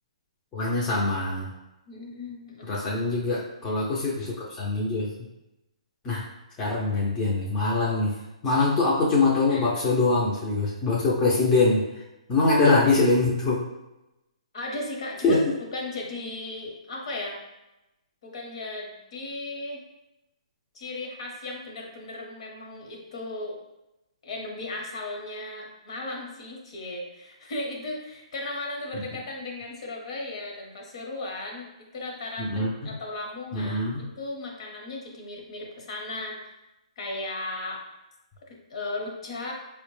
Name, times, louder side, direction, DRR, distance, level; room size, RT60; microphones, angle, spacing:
voice 1, 0.5-1.5 2.7-5.1 6.0-6.2 6.6-8.1 8.4-11.8 12.3-13.7 15.2-15.4 28.9-29.0 32.4-32.9 33.5-34.1, left 3 dB, 20° left, -5 dB, 0.5 m, -23 dB
voice 2, 1.9-2.7 8.4-8.7 9.5-9.6 14.5-15.4 15.7-17.4 18.2-19.8 20.7-23.6 24.2-36.4 37.0-37.8 38.5-39.5, left 2 dB, 55° left, 0 dB, 0.9 m, -36 dB
4.2 x 2.1 x 3.0 m, 0.95 s
hypercardioid pair, 150°, 4 cm